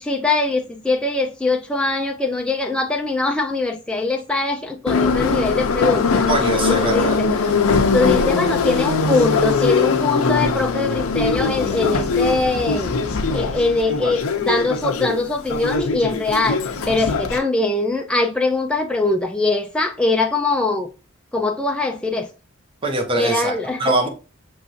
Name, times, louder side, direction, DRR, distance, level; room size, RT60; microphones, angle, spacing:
voice 1, 0.0-6.3 6.7-7.3 7.6-12.9 13.3-20.9 21.3-22.3 23.2-24.0, left 3 dB, 5° left, 0.4 m, -22 dB
Subway metro underground, 4.9-17.4, left 4 dB, 85° left, 0.6 m, -21 dB
voice 2, 6.3-7.2 22.8-23.5 23.8-24.1, right 2 dB, 25° right, 0.9 m, -22 dB
6.1 x 3.1 x 2.7 m
head